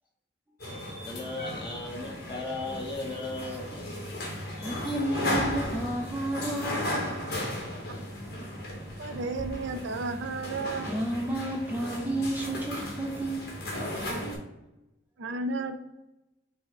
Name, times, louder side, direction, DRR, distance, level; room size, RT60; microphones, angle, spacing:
sound 1, 0.6-14.4, left 1 dB, 60° left, 1.2 m, -35 dB
voice 1, 1.0-3.9 4.4-5.0, left 2 dB, 25° left, -1 dB, 1.0 m, -37 dB
voice 2, 4.6-7.0 10.9-13.5, right 1 dB, 10° right, -1 dB, 0.4 m, -31 dB
voice 3, 9.0-10.9 15.2-15.9, right 3 dB, 75° right, 9 dB, 0.4 m, -33 dB
5.6 x 2.1 x 4.1 m, 0.96 s
head